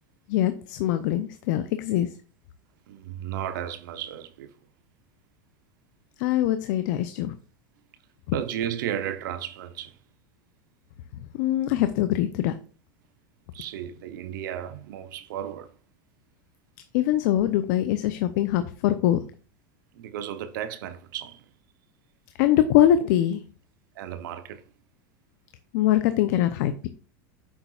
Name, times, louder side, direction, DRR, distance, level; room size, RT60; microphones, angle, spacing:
voice 1, 0.3-2.1 6.2-7.3 11.4-12.5 16.9-19.2 22.4-23.4 25.7-26.9, left 12 dB, 65° left, 0.7 m, -23 dB
voice 2, 2.9-4.6 8.3-10.0 13.5-15.7 19.9-21.5 23.9-24.6, right 10 dB, 75° right, 0.8 m, -34 dB
9.6 x 7.1 x 2.4 m
supercardioid pair, 110°, 11 cm